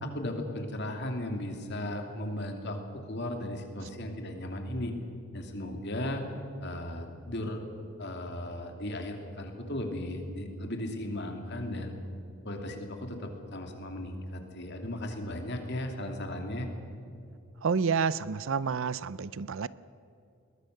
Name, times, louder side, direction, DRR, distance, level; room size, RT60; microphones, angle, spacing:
voice 1, 0.0-2.8 3.1-4.9 5.3-6.2 6.6-7.6 8.0-11.9 12.4-16.7, left 1 dB, 50° left, 4 dB, 2.8 m, -36 dB
voice 2, 17.6-19.7, right 5 dB, 60° right, 18 dB, 0.5 m, -29 dB
22.0 x 20.0 x 6.6 m, 2.6 s
head